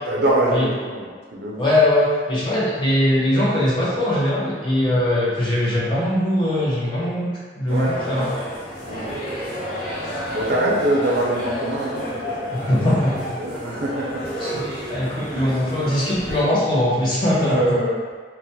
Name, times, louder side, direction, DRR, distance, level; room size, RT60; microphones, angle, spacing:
voice 1, 0.1-1.6 7.7-8.3 8.9-9.2 10.3-12.9 13.4-14.2 15.3-15.5 17.4-18.0, right 1 dB, 65° right, -4 dB, 0.5 m, -24 dB
voice 2, 1.6-8.3 12.5-13.3 14.4-17.8, left 1 dB, 25° left, -7 dB, 0.5 m, -21 dB
sound 1, 7.7-16.4, equal, 45° left, 1.0 m, -31 dB
2.2 x 2.0 x 2.7 m, 1.5 s
head